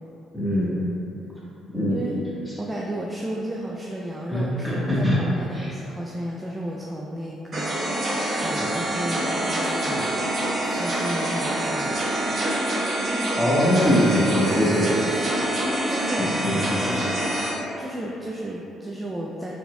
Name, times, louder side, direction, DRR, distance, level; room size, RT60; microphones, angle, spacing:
voice 1, 0.3-0.8 1.7-2.0 4.3-5.2 5.5-5.7 13.4-15.0 16.2-17.1, equal, ahead, -8 dB, 1.3 m, -22 dB
voice 2, 2.6-10.2 10.6-12.0 15.9-16.6 17.7-19.5, right 1 dB, 15° right, -3 dB, 0.4 m, -33 dB
sound 1, 7.5-17.5, right 1 dB, 45° right, 1.3 m, -26 dB
4.3 x 4.1 x 2.2 m, 3.0 s
cardioid pair, 80°, 0 cm